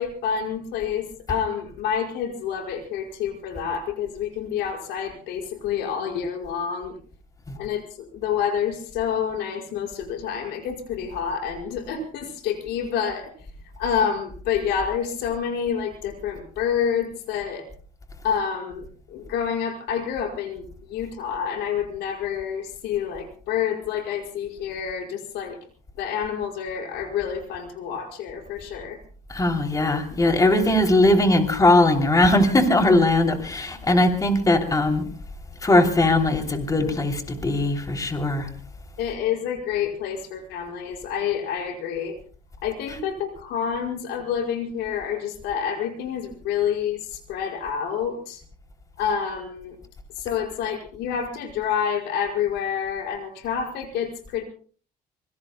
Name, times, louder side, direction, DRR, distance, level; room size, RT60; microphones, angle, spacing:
voice 1, 0.0-7.0 7.6-13.3 13.8-17.7 18.2-25.6 26.0-29.0 39.0-42.2 42.6-48.4 49.0-49.8 50.2-54.4, left 8 dB, 85° left, 5.3 m, -28 dB
voice 2, 29.3-35.1 35.6-38.5 42.9-43.0, left 2 dB, 20° left, 2.9 m, -20 dB
26.0 x 23.5 x 2.2 m
cardioid pair, 110°, 17 cm